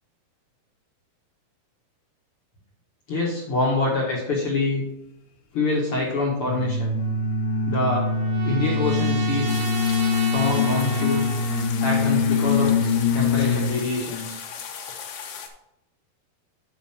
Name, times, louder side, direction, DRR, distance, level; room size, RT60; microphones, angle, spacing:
voice 1, 3.1-4.9 5.5-7.0 7.6-8.1 8.4-9.7 10.3-11.2 11.8-14.4, left 2 dB, 55° left, -3 dB, 1.6 m, -25 dB
sound 1, 6.4-13.8, left 4 dB, 85° left, 3.4 m, -23 dB
Trumpet, 7.0-11.7, right 5 dB, 90° right, 3.1 m, -36 dB
sound 2, 9.5-15.5, left 7 dB, 70° left, 2.4 m, -37 dB
9.4 x 5.7 x 4.4 m, 0.87 s
omnidirectional pair, 4.5 m